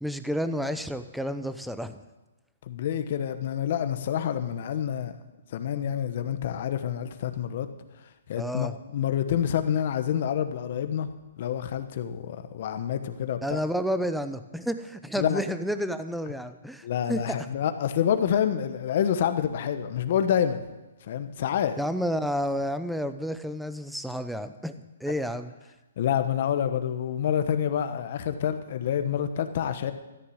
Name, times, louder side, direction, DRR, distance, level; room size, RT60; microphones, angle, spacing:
voice 1, 0.0-2.0 8.4-8.7 13.4-17.4 21.8-24.7 25.0-25.5, equal, ahead, 10 dB, 0.6 m, -30 dB
voice 2, 2.7-5.1 5.5-7.7 8.3-11.1 11.4-13.6 15.1-15.4 16.8-20.6 21.0-21.8 26.0-29.9, left 9 dB, 45° left, 10 dB, 1.1 m, -27 dB
13.5 x 6.8 x 9.6 m, 1.1 s
hypercardioid pair, 160°, 0 cm